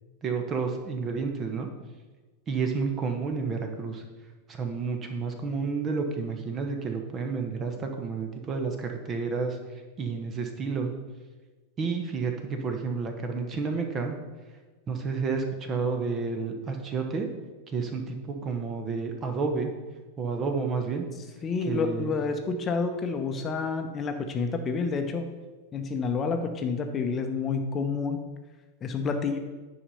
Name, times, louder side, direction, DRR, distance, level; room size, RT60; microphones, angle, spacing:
voice 1, 0.2-1.7 2.5-4.0 4.5-9.6 10.0-10.9 11.8-14.2 14.9-17.3 17.7-19.7 20.2-21.1 21.7-22.1, right 4 dB, 25° right, 5 dB, 1.2 m, -30 dB
voice 2, 21.4-25.3 25.7-28.2 28.8-29.4, left 4 dB, 25° left, 6 dB, 0.9 m, -29 dB
10.0 x 5.0 x 5.6 m, 1.3 s
figure-of-eight pair, 90°, 0 cm